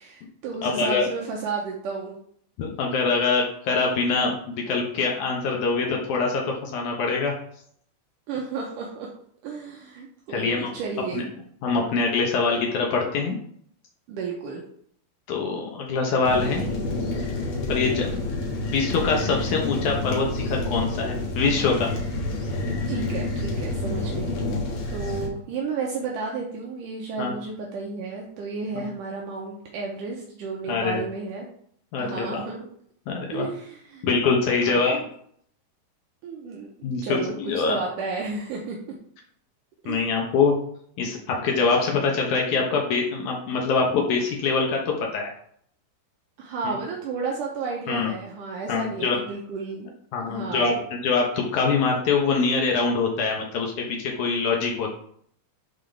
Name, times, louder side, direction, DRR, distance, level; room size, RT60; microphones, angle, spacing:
voice 1, 0.0-2.2 8.3-9.1 9.4-11.2 14.1-14.6 22.9-24.4 24.9-31.5 32.0-32.7 33.3-34.0 34.6-35.0 36.2-36.7 37.0-38.8 39.8-40.0 46.4-49.9 50.2-50.8, right 4 dB, 80° right, -1 dB, 1.9 m, -32 dB
voice 2, 0.6-1.1 2.6-7.3 10.3-10.7 11.1-11.2 11.6-13.4 15.3-16.7 17.7-18.1 18.7-21.9 27.2-27.3 28.8-28.9 30.7-31.0 31.9-32.4 33.1-33.5 34.0-35.1 36.8-37.8 39.9-40.6 41.0-45.3 46.6-46.7 47.9-48.1 48.7-49.2 50.1-54.9, left 4 dB, 80° left, 0 dB, 1.7 m, -24 dB
sound 1, 16.2-25.3, left 2 dB, 60° left, 1.7 m, -28 dB
11.5 x 4.0 x 3.4 m, 0.64 s
omnidirectional pair, 4.9 m